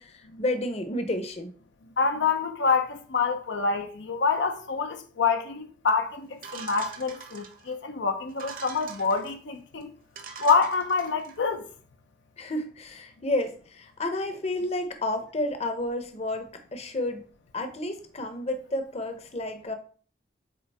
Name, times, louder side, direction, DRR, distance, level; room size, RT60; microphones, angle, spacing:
voice 1, 0.0-1.5 12.4-17.2 17.5-19.8, left 1 dB, 35° left, 0.8 m, -31 dB
voice 2, 2.0-9.9 10.4-11.7, left 5 dB, 80° left, 0.6 m, -26 dB
sound 1, 6.4-7.7 8.3-9.3 9.8-9.9 10.1-11.4, right 5 dB, 50° right, 1.0 m, -43 dB
8.3 x 3.7 x 3.4 m
head